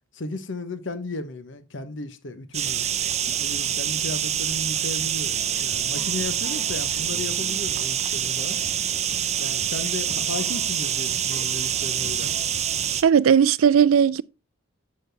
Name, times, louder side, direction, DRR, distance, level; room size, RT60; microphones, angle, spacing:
voice 1, 0.1-2.9 3.4-8.6 9.4-12.3, left 2 dB, 60° left, 0.9 m, -35 dB
sound 1, 2.5-13.0, right 10 dB, 35° right, 0.5 m, -26 dB
sound 2, 5.4-12.9, left 3 dB, 30° left, 1.0 m, -45 dB
voice 2, 13.0-14.2, right 7 dB, 85° right, 0.4 m, -17 dB
8.4 x 6.8 x 3.3 m
head